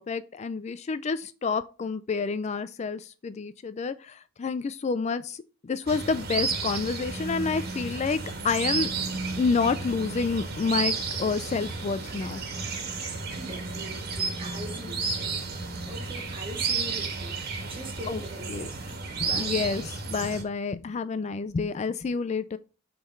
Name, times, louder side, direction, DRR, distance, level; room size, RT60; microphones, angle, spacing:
voice 1, 0.0-8.9 9.4-10.9 11.2-12.4 18.1-18.2 18.5-18.7 19.1-22.6, left 4 dB, 35° left, 0.3 m, -29 dB
sound 1, 5.9-20.4, right 4 dB, 50° right, 1.7 m, -32 dB
voice 2, 12.9-15.5 15.8-19.5, right 1 dB, 25° right, 2.0 m, -42 dB
7.7 x 3.8 x 5.3 m
head